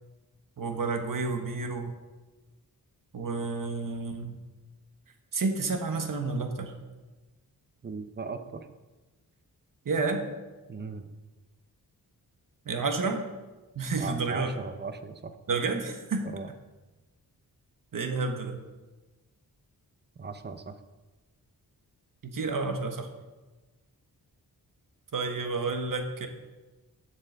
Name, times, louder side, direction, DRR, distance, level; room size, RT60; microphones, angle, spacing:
voice 1, 0.6-2.0 3.1-4.4 5.3-6.7 9.8-10.2 12.6-13.2 13.7-14.5 15.5-16.3 17.9-18.6 22.3-23.1 25.1-26.3, right 4 dB, 60° right, 5 dB, 1.3 m, -30 dB
voice 2, 7.8-8.7 10.7-11.1 14.0-15.3 16.2-16.5 20.2-20.7, right 4 dB, 30° right, 9 dB, 0.7 m, -38 dB
7.7 x 7.6 x 6.5 m, 1.2 s
wide cardioid pair, 125°, 37 cm